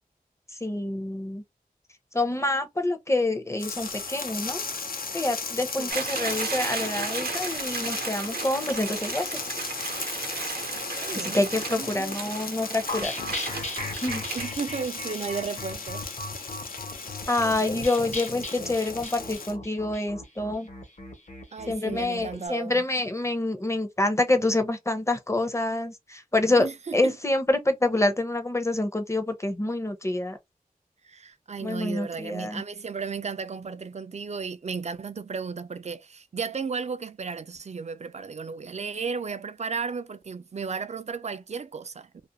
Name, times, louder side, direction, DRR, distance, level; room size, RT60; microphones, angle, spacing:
voice 1, 0.6-1.4 2.1-4.6 5.1-9.4 11.3-13.1 13.9-14.2 17.3-20.7 21.7-26.7 26.9-30.4 31.6-32.6, left 2 dB, 20° left, 0.6 m, -27 dB
sound 1, 3.6-19.5, left 4 dB, 70° left, 0.5 m, -36 dB
sound 2, 5.9-14.5, right 4 dB, 80° right, 0.6 m, -34 dB
voice 2, 10.8-12.4 14.3-16.1 21.5-22.8 26.6-27.1 31.0-42.3, right 5 dB, 45° right, 0.4 m, -34 dB
sound 3, 12.9-22.3, left 2 dB, 50° left, 0.8 m, -37 dB
2.4 x 2.1 x 2.7 m
wide cardioid pair, 50°, 15 cm